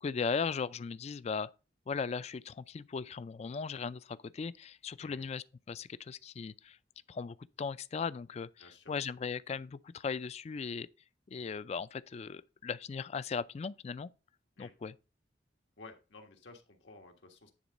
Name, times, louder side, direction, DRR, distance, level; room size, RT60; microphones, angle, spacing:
voice 1, 0.0-1.5 1.9-6.8 7.1-10.9 11.3-14.1 14.6-14.9, left 5 dB, 35° left, 0.3 m, -38 dB
voice 2, 5.0-5.3 8.6-9.0 14.6-14.7 15.8-17.5, left 3 dB, 85° left, 1.6 m, -54 dB
10.0 x 3.7 x 5.3 m
head